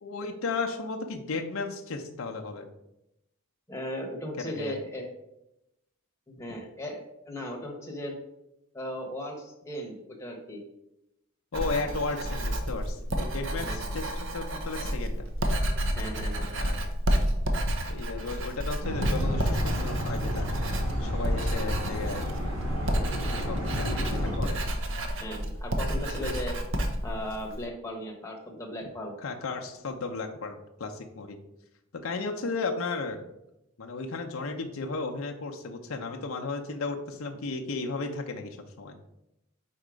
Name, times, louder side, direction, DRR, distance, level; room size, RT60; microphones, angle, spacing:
voice 1, 0.0-2.7 4.4-4.8 11.5-15.3 16.4-16.8 17.9-20.5 21.0-22.2 23.4-24.6 29.2-31.4 32.0-33.2 33.8-38.9, left 3 dB, 70° left, 3 dB, 0.6 m, -34 dB
voice 2, 3.7-5.1 6.3-8.1 8.7-10.6 13.7-13.8 15.9-16.5 25.2-26.6 27.0-29.2, left 1 dB, 15° left, 0 dB, 1.0 m, -37 dB
Writing, 11.5-27.6, equal, 60° right, 0.7 m, -30 dB
sound 1, 18.8-24.4, equal, 80° right, 1.3 m, -31 dB
4.5 x 4.2 x 5.0 m, 0.87 s
head